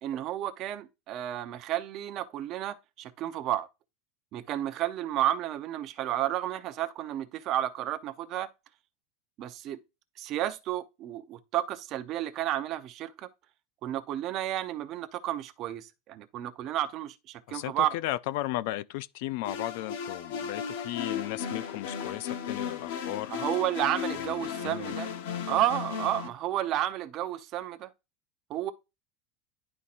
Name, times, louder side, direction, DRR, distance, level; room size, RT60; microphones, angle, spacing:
voice 1, 0.0-3.7 4.3-8.5 9.4-9.8 10.2-13.3 13.8-17.9 23.3-25.1 25.5-27.9 28.5-28.7, right 12 dB, 35° right, 0.6 m, -31 dB
voice 2, 17.5-23.3 24.1-24.9, left 15 dB, 55° left, 0.4 m, -35 dB
sound 1, 19.4-26.3, left 8 dB, 80° left, 0.9 m, -35 dB
11.0 x 4.2 x 2.5 m
supercardioid pair, 170°, 0 cm